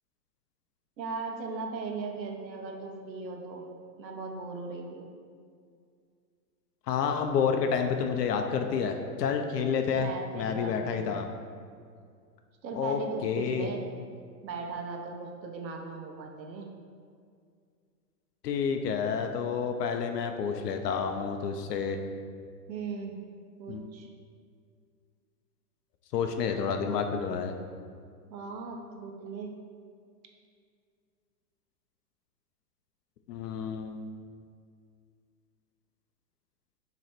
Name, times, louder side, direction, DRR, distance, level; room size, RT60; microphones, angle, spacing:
voice 1, 1.0-3.6 4.0-5.1 9.9-11.2 12.6-13.8 14.4-16.7 22.7-23.2 23.6-24.1 28.3-29.5, right 4 dB, 90° right, 2 dB, 1.1 m, -38 dB
voice 2, 6.9-10.1 10.3-11.3 12.7-13.7 18.4-22.0 23.7-23.9 26.1-27.6 33.3-34.1, left 6 dB, 70° left, 5 dB, 0.7 m, -29 dB
7.9 x 3.1 x 4.4 m, 2.2 s
hypercardioid pair, 155°, 50 cm